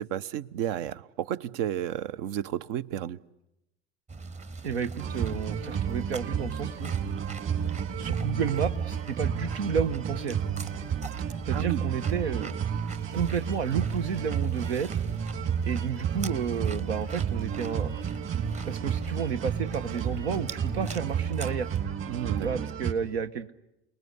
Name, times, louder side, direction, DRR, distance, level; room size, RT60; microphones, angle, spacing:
voice 1, 0.0-3.2 11.2-11.8 22.1-22.5, right 11 dB, 60° right, 1.0 m, -32 dB
sound 1, 4.1-21.8, right 3 dB, 20° right, 1.2 m, -41 dB
voice 2, 4.6-6.9 8.0-10.4 11.5-12.6 13.1-14.9 15.6-17.9 18.3-21.7 22.4-23.5, right 7 dB, 80° right, 1.3 m, -31 dB
sound 2, 5.0-22.9, right 8 dB, 40° right, 4.0 m, -31 dB
29.5 x 20.5 x 9.7 m
hypercardioid pair, 90°, 31 cm